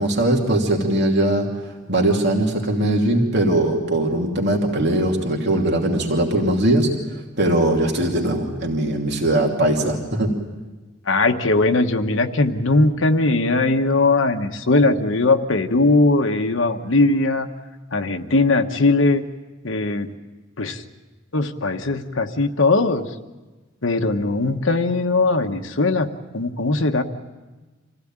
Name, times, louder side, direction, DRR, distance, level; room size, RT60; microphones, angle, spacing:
voice 1, 0.0-6.9 7.4-10.3, right 1 dB, 60° right, 1 dB, 2.7 m, -20 dB
voice 2, 11.1-17.5 17.9-19.2 19.6-20.1 20.6-20.8 21.3-23.1 23.8-26.1 26.3-27.0, left 2 dB, 75° left, 5 dB, 1.2 m, -19 dB
26.0 x 16.0 x 8.8 m, 1.2 s
head